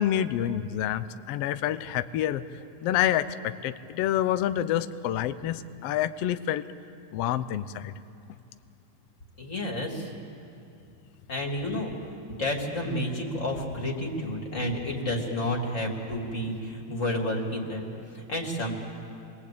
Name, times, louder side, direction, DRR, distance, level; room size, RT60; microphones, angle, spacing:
voice 1, 0.0-6.6 7.1-7.9, left 11 dB, 85° left, 12 dB, 1.3 m, -28 dB
voice 2, 9.4-10.1 11.3-11.9 12.3-17.9 18.1-18.7, left 1 dB, 25° left, 1 dB, 2.9 m, -30 dB
29.0 x 23.0 x 8.6 m, 2.6 s
omnidirectional pair, 3.7 m